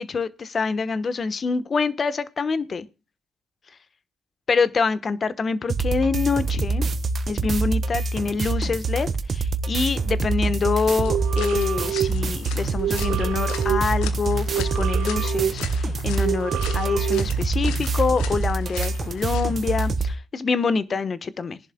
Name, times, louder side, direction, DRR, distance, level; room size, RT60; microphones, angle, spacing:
voice 1, 0.0-2.9 4.5-6.9 7.3-21.6, left 5 dB, 50° left, 1.1 m, -26 dB
sound 1, 5.7-20.1, right 3 dB, 55° right, 1.2 m, -25 dB
sound 2, 10.9-19.9, left 9 dB, 80° left, 1.2 m, -40 dB
sound 3, 11.0-17.9, right 12 dB, 75° right, 1.0 m, -29 dB
19.5 x 11.0 x 2.2 m
hypercardioid pair, 40°, 0 cm